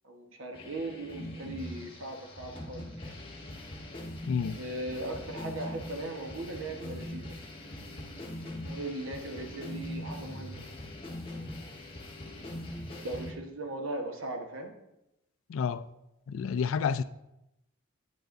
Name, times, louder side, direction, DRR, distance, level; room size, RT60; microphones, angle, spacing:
voice 1, 0.0-3.2 4.5-7.3 8.4-10.7 11.1-11.8 13.0-14.7, right 2 dB, 70° right, 1.1 m, -39 dB
sound 1, 0.5-13.3, left 1 dB, 25° left, 1.1 m, -42 dB
voice 2, 4.2-4.6 15.5-15.9 16.3-17.0, left 6 dB, 70° left, 0.3 m, -29 dB
8.9 x 7.8 x 2.6 m
head